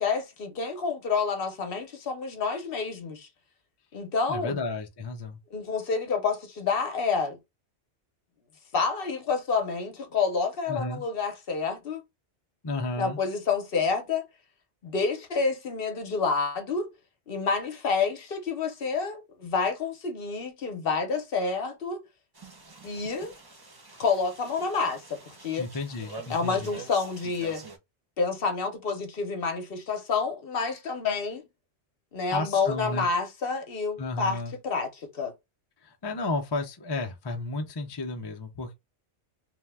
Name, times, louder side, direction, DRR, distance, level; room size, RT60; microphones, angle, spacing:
voice 1, 0.0-3.3 3.9-4.6 5.5-7.4 8.7-12.0 13.0-14.3 14.8-16.9 17.3-22.0 22.8-23.3 24.0-25.7 26.3-27.6 28.2-31.4 32.1-35.3, left 5 dB, 60° left, 0.9 m, -28 dB
voice 2, 4.3-5.4 10.7-11.0 12.6-13.2 25.6-26.7 32.3-33.1 34.0-34.5 35.8-38.7, left 2 dB, 35° left, 0.4 m, -32 dB
sound 1, 22.3-27.8, right 3 dB, 25° right, 0.5 m, -46 dB
2.7 x 2.1 x 3.3 m
omnidirectional pair, 1.2 m